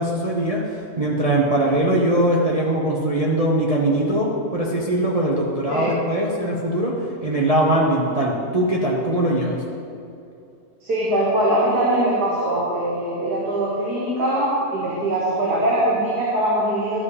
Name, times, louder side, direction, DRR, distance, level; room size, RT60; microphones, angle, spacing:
voice 1, 0.0-6.9 7.2-9.6, right 1 dB, 35° right, -3 dB, 0.6 m, -21 dB
voice 2, 10.8-17.0, right 1 dB, 90° right, -6 dB, 1.9 m, -22 dB
12.0 x 4.9 x 4.9 m, 2.6 s
omnidirectional pair, 1.7 m